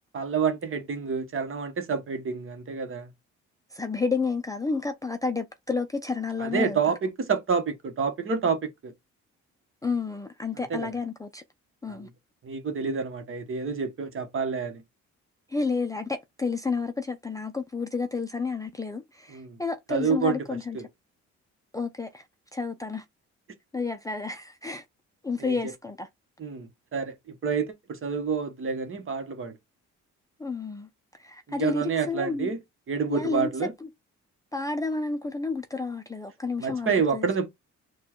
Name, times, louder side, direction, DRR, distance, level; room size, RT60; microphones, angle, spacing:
voice 1, 0.1-3.1 6.4-8.9 10.6-10.9 11.9-12.1 12.4-14.8 19.3-19.6 19.9-20.4 20.7-20.9 25.4-25.6 26.4-29.5 31.6-32.6 32.9-33.7 36.6-37.5, right 5 dB, 45° right, 1.1 m, -28 dB
voice 2, 3.7-6.8 9.8-11.4 11.8-12.1 15.5-20.8 21.7-22.2 22.5-23.0 23.7-24.8 25.2-26.1 30.4-30.9 31.2-32.5 33.1-33.5 33.8-33.9 34.5-37.3, left 4 dB, 10° left, 0.5 m, -30 dB
4.3 x 2.4 x 4.4 m
cardioid pair, 90°, 30 cm